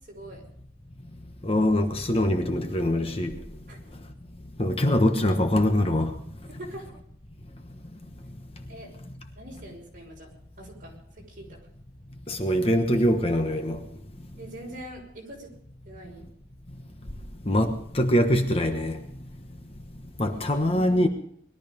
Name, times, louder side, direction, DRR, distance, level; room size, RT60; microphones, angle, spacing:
voice 1, 0.0-0.4 3.7-3.8 6.4-6.9 8.7-8.9 9.3-10.3 10.6-11.6 14.4-15.5 15.8-16.2 20.3-21.0, right 1 dB, 45° right, 6.0 m, -43 dB
voice 2, 1.4-3.3 4.6-6.1 12.3-13.8 17.5-19.0 20.2-21.1, left 1 dB, 30° left, 1.2 m, -23 dB
21.0 x 13.0 x 5.3 m
head